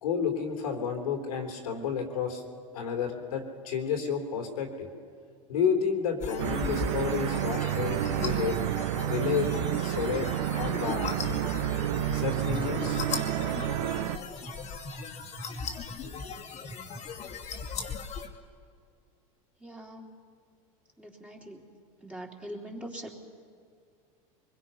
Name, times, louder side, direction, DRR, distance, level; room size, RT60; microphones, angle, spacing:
voice 1, 0.0-2.4 2.7-4.9 5.5-8.6 9.1-9.5 9.8-10.3 10.6-11.2 12.1-13.1, left 7 dB, 85° left, 3 dB, 3.6 m, -31 dB
sound 1, 6.2-18.3, left 5 dB, 40° left, 2.4 m, -38 dB
sound 2, 6.4-14.2, right 13 dB, 70° right, 0.9 m, -30 dB
voice 2, 19.6-20.1 21.0-21.7 22.0-23.2, right 1 dB, 5° right, -1 dB, 3.6 m, -42 dB
23.5 x 22.0 x 5.8 m, 2.3 s
hypercardioid pair, 100°, 18 cm